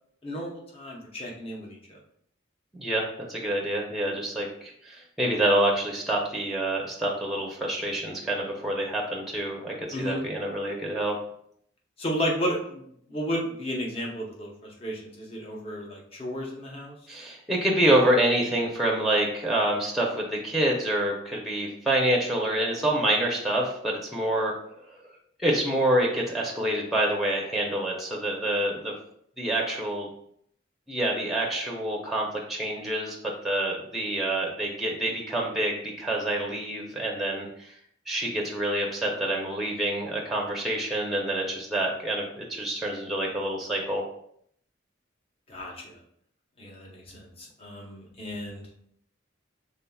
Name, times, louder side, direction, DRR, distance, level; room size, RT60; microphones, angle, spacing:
voice 1, 0.2-2.0 9.9-10.2 12.0-17.0 45.5-46.0 46.6-48.6, equal, 30° left, -1 dB, 0.8 m, -33 dB
voice 2, 2.7-11.1 17.1-24.5 24.9-25.0 25.4-28.9 29.4-30.1 30.9-33.2 33.4-37.7 38.1-44.0, right 1 dB, ahead, -1 dB, 0.6 m, -27 dB
5.5 x 3.7 x 2.3 m, 0.69 s
head